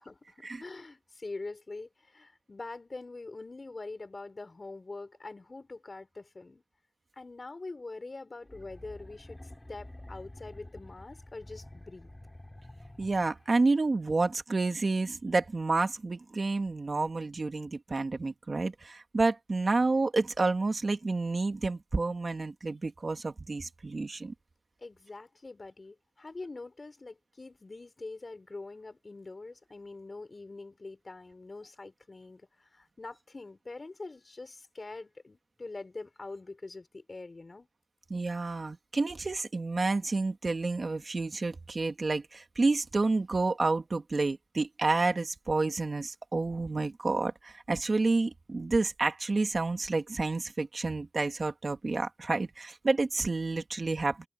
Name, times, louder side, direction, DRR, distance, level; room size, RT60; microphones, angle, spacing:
voice 1, 0.0-6.6 7.2-9.4 9.7-12.1 24.8-37.7, left 3 dB, 40° left, 5.9 m, -44 dB
sound 1, 8.4-13.7, left 1 dB, 15° left, 7.4 m, -49 dB
voice 2, 13.0-24.3 38.1-54.3, right 3 dB, 45° right, 1.9 m, -29 dB
wide cardioid pair, 105°, 0 cm